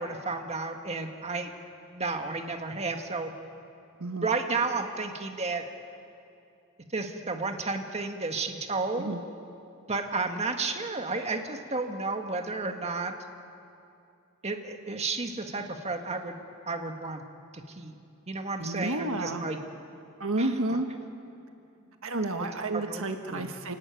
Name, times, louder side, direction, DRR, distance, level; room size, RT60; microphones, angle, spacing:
voice 1, 0.0-1.5 1.9-3.3 4.2-5.6 6.9-9.1 9.9-13.1 14.4-16.4 16.7-17.2 17.5-17.9 18.3-19.6 20.4-20.5 22.4-22.5 22.7-23.0 23.3-23.5, right 3 dB, 30° right, 4 dB, 1.8 m, -32 dB
voice 2, 4.0-4.3 9.0-9.2 18.6-19.4 20.2-20.9 22.0-23.8, right 2 dB, 65° right, 5 dB, 1.6 m, -30 dB
28.5 x 18.5 x 9.3 m, 2.5 s
head